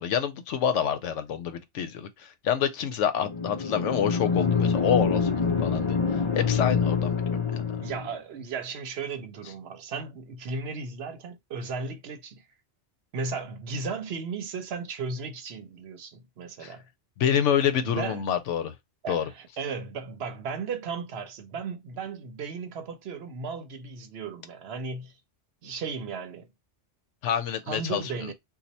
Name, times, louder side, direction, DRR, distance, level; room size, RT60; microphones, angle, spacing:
voice 1, 0.0-2.1 2.4-6.0 6.4-7.2 16.6-16.7 17.2-18.7 19.1-19.2 27.2-28.0, left 8 dB, 85° left, 0.9 m, -27 dB
sound 1, 3.2-8.1, left 5 dB, 35° left, 0.5 m, -26 dB
voice 2, 7.8-12.4 13.1-16.8 17.8-18.2 19.0-25.1 25.6-26.5 27.7-28.3, right 4 dB, 65° right, 0.8 m, -35 dB
2.8 x 2.3 x 4.0 m
omnidirectional pair, 1.2 m